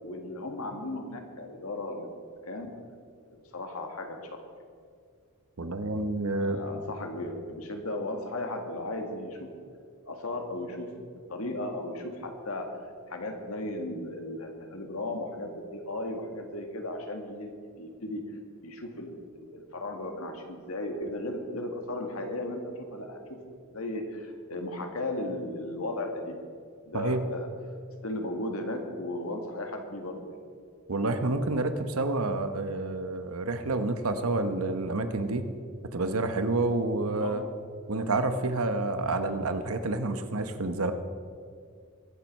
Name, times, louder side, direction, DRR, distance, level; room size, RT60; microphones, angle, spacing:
voice 1, 0.0-2.1 2.5-2.7 3.5-4.4 6.2-9.5 10.1-12.7 13.1-17.5 17.8-18.3 18.6-22.6 22.9-23.2 23.7-26.4 26.9-27.5 28.0-30.4 37.2-37.5, left 1 dB, 75° left, 4 dB, 1.9 m, -36 dB
voice 2, 5.6-6.6 26.9-27.2 30.9-35.5 35.9-37.4 37.9-40.9, right 2 dB, 75° right, 9 dB, 1.0 m, -29 dB
22.0 x 7.7 x 5.4 m, 2.1 s
head